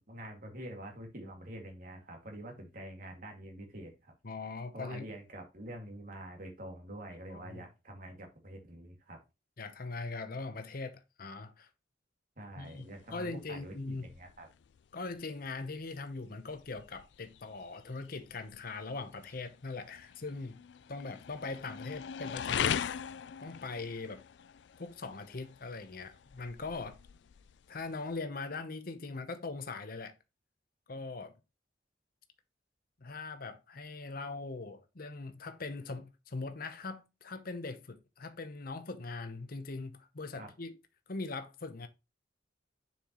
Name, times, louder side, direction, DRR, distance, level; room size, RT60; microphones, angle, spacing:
voice 1, 0.1-4.1 4.7-9.2 12.4-14.5 40.4-40.5, right 1 dB, 50° right, 2.3 m, -46 dB
voice 2, 4.2-5.1 7.3-7.7 9.6-11.7 12.6-14.1 14.9-20.6 20.9-22.8 23.4-24.2 24.8-27.0 27.7-30.2 30.9-31.4 33.0-40.8 41.1-41.9, left 3 dB, 55° left, 0.9 m, -41 dB
sound 1, 12.7-28.2, left 8 dB, 75° left, 0.4 m, -42 dB
7.1 x 5.7 x 3.0 m
head